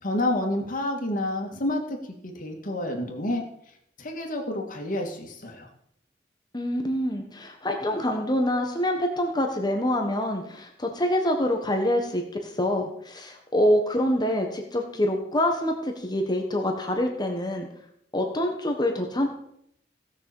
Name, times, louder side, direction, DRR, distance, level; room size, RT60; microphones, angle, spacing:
voice 1, 0.0-2.0 2.2-3.4 4.0-5.7, left 1 dB, 50° left, 2 dB, 2.5 m, -29 dB
voice 2, 6.5-17.7 18.1-19.3, left 1 dB, 25° left, 3 dB, 1.4 m, -26 dB
17.0 x 6.5 x 7.2 m, 0.72 s
head